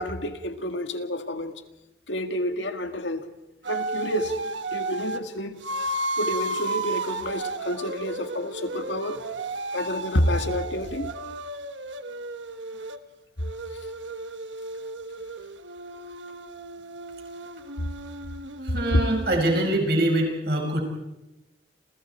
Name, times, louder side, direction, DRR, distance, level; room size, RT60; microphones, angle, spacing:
voice 1, 0.0-1.6 2.1-3.3 3.7-4.4 4.7-5.6 6.2-9.2 9.7-11.1 18.7-18.8, equal, 85° left, 2.0 m, -29 dB
sound 1, 3.6-5.2 5.6-13.0 13.4-19.8, right 2 dB, 85° right, 1.3 m, -34 dB
voice 2, 18.6-20.8, right 1 dB, 55° right, 5.6 m, -24 dB
29.0 x 28.5 x 4.5 m
head